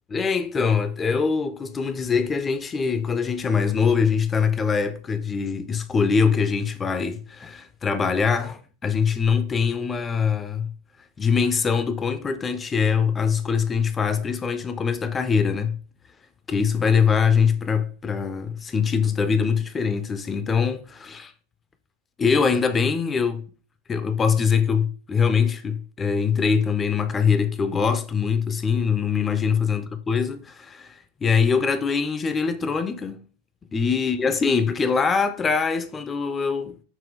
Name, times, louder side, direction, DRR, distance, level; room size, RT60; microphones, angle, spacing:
voice 1, 0.1-10.7 11.2-15.8 16.5-21.3 22.2-23.4 23.9-33.2 33.7-36.8, left 6 dB, 20° left, 0.4 m, -23 dB
6.0 x 2.2 x 3.7 m
figure-of-eight pair, 90°, 0 cm